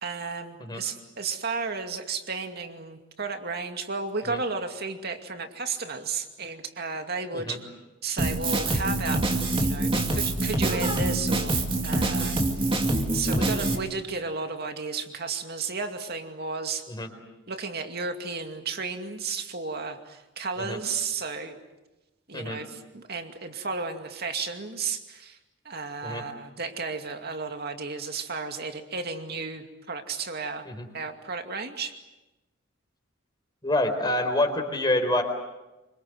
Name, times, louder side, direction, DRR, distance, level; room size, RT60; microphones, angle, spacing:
voice 1, 0.0-7.6 8.0-9.3 9.6-11.6 11.8-12.7 13.1-16.9 17.5-21.6 22.3-25.4 25.6-30.7 30.9-31.9, right 4 dB, 55° right, 6 dB, 2.5 m, -33 dB
Drum kit, 8.2-13.8, right 2 dB, 30° right, 2.5 m, -25 dB
voice 2, 33.6-35.2, left 1 dB, 20° left, 4 dB, 4.2 m, -27 dB
26.5 x 25.0 x 7.9 m, 1.0 s
head